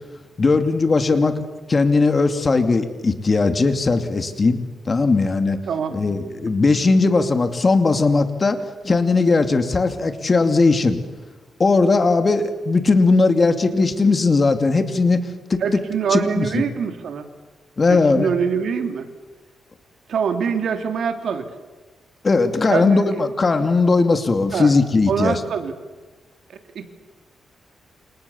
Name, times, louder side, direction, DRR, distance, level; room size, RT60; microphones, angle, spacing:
voice 1, 0.4-1.4 1.7-4.6 4.9-5.6 5.9-11.0 11.6-15.6 16.1-16.6 17.8-18.3 22.2-25.4, left 3 dB, 35° left, 8 dB, 2.7 m, -18 dB
voice 2, 5.7-6.0 15.6-17.3 17.9-19.1 20.1-21.5 22.7-23.1 24.5-24.7 25.1-25.7 26.7-26.9, right 6 dB, 70° right, 7 dB, 3.1 m, -24 dB
29.0 x 28.0 x 7.3 m, 1.2 s
cardioid pair, 105°, 0 cm